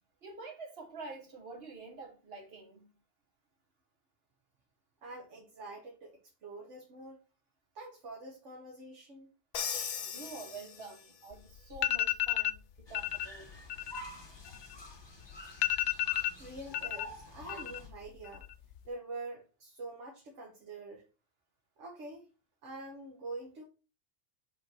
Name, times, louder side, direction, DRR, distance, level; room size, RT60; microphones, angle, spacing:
voice 1, 0.2-2.8 10.0-13.5, right 3 dB, 55° right, 1.6 m, -47 dB
voice 2, 5.0-7.2 7.7-9.3 15.4-15.5 16.1-18.5 18.8-21.0 21.8-22.3 22.6-23.6, right 2 dB, 80° right, 1.5 m, -46 dB
Crash cymbal, 9.5-11.3, left 7 dB, 50° left, 0.4 m, -39 dB
sound 1, 11.3-11.4 11.7-12.6 12.9-13.3 13.6-15.0 15.3-15.4 15.6-17.1 17.4-18.0 18.2-18.8, left 15 dB, 75° left, 0.9 m, -32 dB
sound 2, 12.9-17.9, equal, 20° left, 1.2 m, -49 dB
5.3 x 3.9 x 5.4 m
omnidirectional pair, 1.2 m